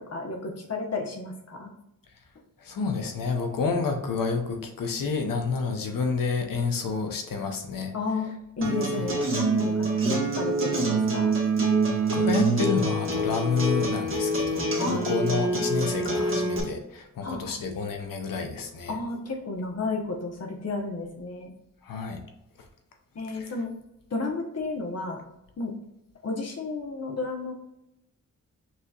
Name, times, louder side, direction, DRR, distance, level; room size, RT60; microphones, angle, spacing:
voice 1, 0.1-1.7 7.9-8.3 8.6-11.3 14.7-15.1 17.2-17.6 18.9-21.5 23.1-23.7 24.1-25.2 25.6-25.7 26.2-27.5, left 3 dB, 50° left, 2 dB, 0.9 m, -32 dB
voice 2, 2.6-7.9 8.9-9.1 12.0-19.0 21.8-22.2 23.3-23.5, left 5 dB, 90° left, 4 dB, 0.8 m, -29 dB
Acoustic guitar, 8.6-16.6, right 2 dB, 40° right, 1.1 m, -26 dB
6.0 x 2.9 x 2.3 m, 0.86 s
wide cardioid pair, 105°, 32 cm